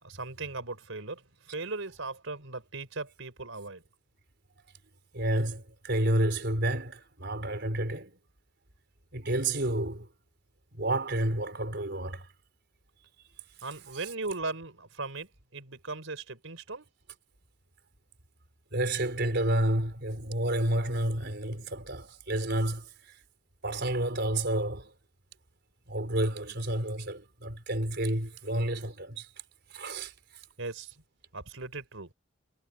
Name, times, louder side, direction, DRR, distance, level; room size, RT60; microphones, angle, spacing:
voice 1, 0.0-3.8 13.6-16.9 30.6-31.0 31.3-32.1, right 3 dB, 80° right, 4.4 m, -38 dB
voice 2, 5.1-8.1 9.1-10.1 10.7-12.3 18.7-23.1 23.6-24.9 25.9-29.3 29.7-30.1, right 1 dB, 55° right, 4.5 m, -30 dB
head